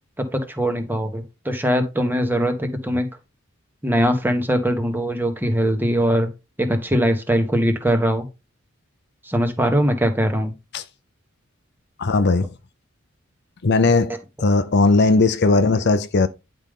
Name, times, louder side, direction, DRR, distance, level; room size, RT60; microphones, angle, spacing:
voice 1, 0.2-3.1 3.8-6.3 6.6-8.3 9.2-10.5, equal, 10° right, 1.5 m, -21 dB
voice 2, 12.0-12.5 13.6-16.3, left 3 dB, 55° left, 0.6 m, -18 dB
10.5 x 5.2 x 3.7 m
head